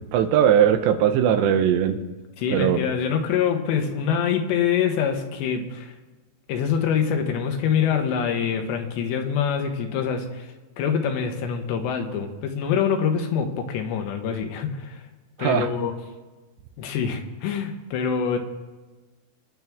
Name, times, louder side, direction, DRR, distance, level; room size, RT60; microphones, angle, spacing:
voice 1, 0.0-2.0 2.5-2.8 15.4-15.7, right 9 dB, 85° right, 8 dB, 3.1 m, -19 dB
voice 2, 2.4-5.9 6.5-15.1 15.4-15.9 16.8-18.4, left 7 dB, 80° left, 4 dB, 3.4 m, -25 dB
26.0 x 10.5 x 3.6 m, 1.2 s
omnidirectional pair, 5.0 m